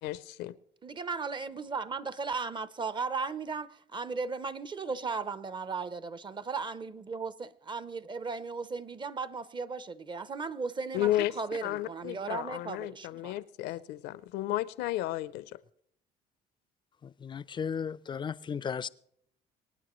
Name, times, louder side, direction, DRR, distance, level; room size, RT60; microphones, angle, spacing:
voice 1, 0.0-0.6 10.9-11.4 11.6-15.5, left 14 dB, 85° left, 0.5 m, -33 dB
voice 2, 0.8-11.1 11.4-13.3, right 4 dB, 25° right, 0.6 m, -36 dB
voice 3, 17.0-18.9, left 7 dB, 30° left, 0.4 m, -35 dB
25.5 x 9.4 x 3.1 m
cardioid pair, 110°, 17 cm